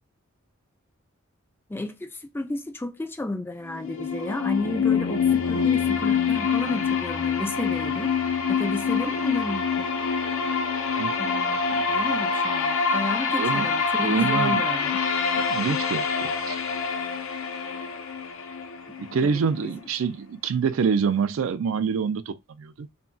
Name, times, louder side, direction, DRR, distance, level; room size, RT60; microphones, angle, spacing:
voice 1, 1.7-2.1 2.3-8.1 8.5-9.9 11.2-15.0 18.9-19.0 19.2-19.7, left 2 dB, 10° left, 0.3 m, -32 dB
sound 1, 3.7-19.6, left 5 dB, 85° left, 0.6 m, -25 dB
voice 2, 14.0-14.6 15.5-16.6 19.0-22.9, right 6 dB, 70° right, 0.3 m, -26 dB
2.3 x 2.2 x 3.7 m
head